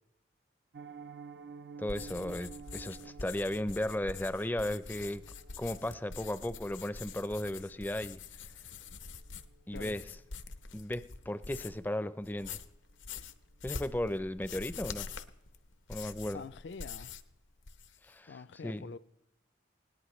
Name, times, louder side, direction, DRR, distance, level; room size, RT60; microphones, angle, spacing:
Piano, 0.7-11.6 11.9-12.1 12.4-12.6 13.0-13.2 13.5-13.6, right 5 dB, 60° right, 0.5 m, -53 dB
sound 1, 1.8-11.9 12.2-17.3 17.6-18.1, left 5 dB, 85° left, 0.9 m, -45 dB
voice 1, 1.8-5.2 5.6-8.2 9.7-10.0 10.7-12.6 13.6-15.1 15.9-16.4 18.0-18.4 18.6-18.8, left 1 dB, 10° left, 0.4 m, -35 dB
voice 2, 16.3-17.1 18.3-19.0, left 5 dB, 70° left, 0.4 m, -46 dB
20.0 x 18.0 x 3.1 m
head